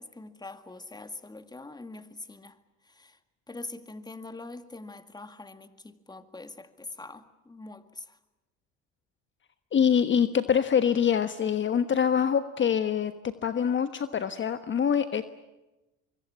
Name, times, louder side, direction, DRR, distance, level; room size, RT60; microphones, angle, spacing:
voice 1, 0.0-2.6 2.9-3.2 3.5-8.2, left 2 dB, 15° left, 10 dB, 2.0 m, -43 dB
voice 2, 9.7-13.1 13.4-15.2, left 7 dB, 35° left, 10 dB, 1.3 m, -24 dB
24.5 x 23.5 x 8.6 m, 1.0 s
supercardioid pair, 85°, 32 cm